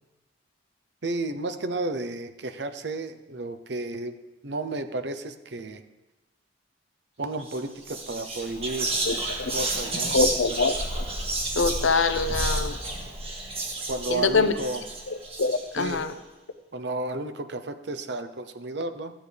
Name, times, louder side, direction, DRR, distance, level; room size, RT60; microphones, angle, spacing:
voice 1, 1.0-4.2 4.4-5.8 7.2-8.9 9.5-10.2 10.5-10.6 13.9-14.8 15.8-16.0 16.7-19.1, right 2 dB, 60° right, 9 dB, 0.8 m, -32 dB
Whispering, 7.4-7.6 7.9-15.9, right 2 dB, 30° right, 1.7 m, -31 dB
voice 2, 9.1-9.5 10.1-10.7 11.5-12.8 14.1-14.5 15.1-16.1, left 4 dB, 85° left, 10 dB, 0.7 m, -24 dB
14.5 x 8.8 x 3.4 m, 1.1 s
head